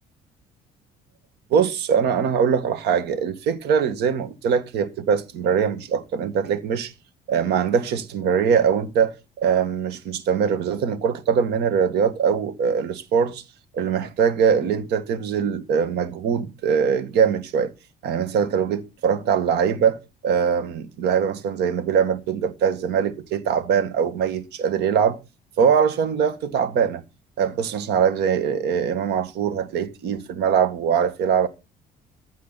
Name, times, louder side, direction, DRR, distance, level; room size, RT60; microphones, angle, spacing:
voice 1, 1.5-6.9 7.3-13.4 13.7-17.7 18.0-25.2 25.6-27.0 27.4-31.5, right 7 dB, 80° right, 1.8 m, -22 dB
15.5 x 9.7 x 4.2 m
cardioid pair, 110°, 17 cm